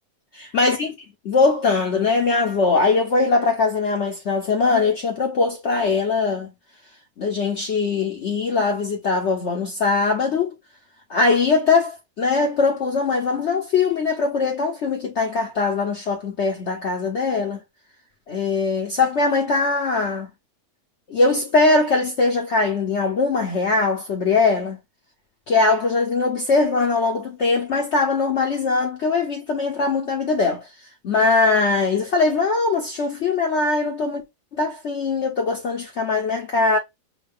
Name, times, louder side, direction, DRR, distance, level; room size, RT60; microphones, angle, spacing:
voice 1, 0.5-0.9 1.2-6.5 7.2-10.5 11.1-17.6 18.3-20.3 21.1-24.8 25.5-30.7 31.0-34.2 34.5-36.8, left 4 dB, 80° left, 0.6 m, -21 dB
6.3 x 2.3 x 3.4 m
omnidirectional pair, 2.1 m